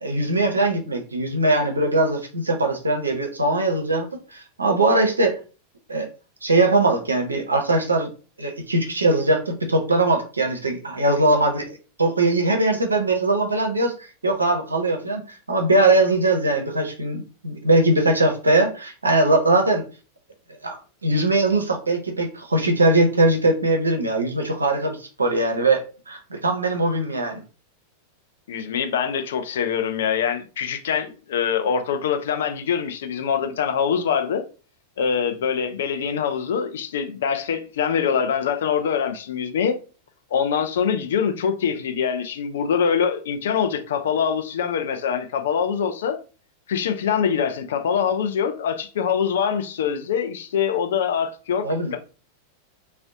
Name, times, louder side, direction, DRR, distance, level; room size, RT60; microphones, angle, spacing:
voice 1, 0.0-5.4 5.9-6.1 6.4-8.1 8.4-19.8 20.6-27.4 51.6-51.9, right 2 dB, 80° right, 0.5 m, -21 dB
voice 2, 28.5-34.4 35.0-39.8 40.3-46.2 46.7-52.0, left 7 dB, 60° left, 0.3 m, -24 dB
2.5 x 2.0 x 2.5 m
figure-of-eight pair, 90°, 0 cm